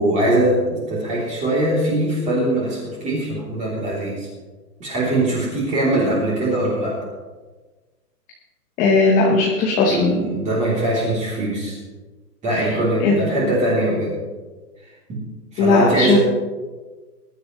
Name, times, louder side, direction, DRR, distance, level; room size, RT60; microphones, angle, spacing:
voice 1, 0.0-4.3 4.8-7.0 9.9-11.8 12.4-14.2 15.1-15.2 15.5-16.2, right 1 dB, 15° right, -5 dB, 3.3 m, -21 dB
voice 2, 8.8-10.2 13.0-13.2 15.6-16.2, left 3 dB, 15° left, -1 dB, 1.1 m, -17 dB
21.5 x 11.0 x 3.2 m, 1.3 s
hypercardioid pair, 155°, 49 cm